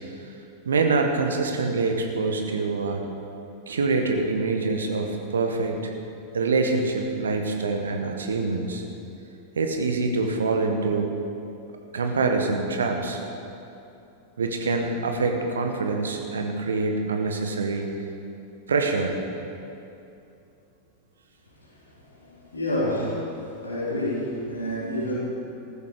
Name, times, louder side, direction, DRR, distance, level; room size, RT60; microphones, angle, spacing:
voice 1, 0.6-3.0 3.7-5.9 6.3-8.8 9.5-11.1 11.9-13.2 14.4-17.9 18.7-19.2, right 3 dB, 70° right, 4 dB, 1.4 m, -25 dB
voice 2, 21.6-23.3 23.6-25.2, left 1 dB, 80° left, -6 dB, 4.0 m, -29 dB
15.0 x 12.5 x 5.0 m, 2.8 s
figure-of-eight pair, 90°, 0 cm